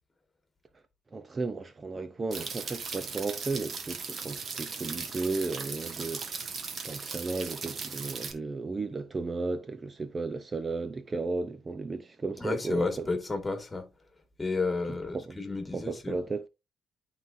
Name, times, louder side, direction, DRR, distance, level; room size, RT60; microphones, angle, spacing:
voice 1, 1.1-6.2 6.8-13.1 14.9-15.4 15.7-16.4, right 3 dB, 30° right, 0.6 m, -34 dB
sound 1, 2.3-8.3, right 5 dB, 50° right, 1.5 m, -38 dB
voice 2, 12.4-13.9 14.4-16.2, left 3 dB, 20° left, 2.0 m, -32 dB
11.5 x 4.0 x 2.6 m
cardioid pair, 90°, 0 cm